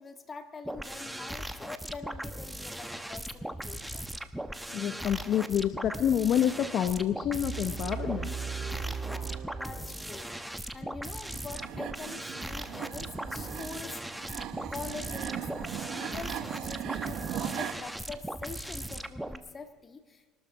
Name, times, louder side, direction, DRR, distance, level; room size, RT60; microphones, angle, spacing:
voice 1, 0.0-4.1 9.0-10.3 10.7-14.2 14.7-20.4, left 4 dB, 30° left, 8 dB, 1.6 m, -44 dB
sound 1, 0.6-19.4, right 1 dB, 5° right, 0.9 m, -39 dB
voice 2, 4.7-8.3, left 9 dB, 55° left, 10 dB, 0.8 m, -28 dB
sound 2, 7.3-10.3, right 6 dB, 30° right, 1.8 m, -38 dB
sound 3, 11.3-17.7, right 10 dB, 60° right, 1.2 m, -38 dB
23.0 x 12.5 x 4.9 m, 1.5 s
supercardioid pair, 95°, 0 cm